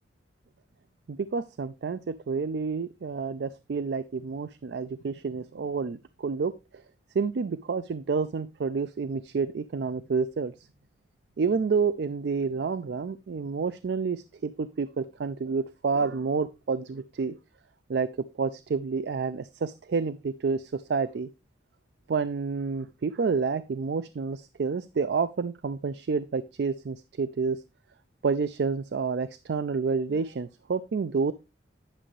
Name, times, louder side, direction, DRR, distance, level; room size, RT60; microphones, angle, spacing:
voice 1, 1.1-6.5 7.1-10.5 11.4-17.4 17.9-21.3 22.1-27.6 28.2-31.3, right 5 dB, 60° right, 15 dB, 0.4 m, -29 dB
10.0 x 6.2 x 3.1 m, 0.27 s
head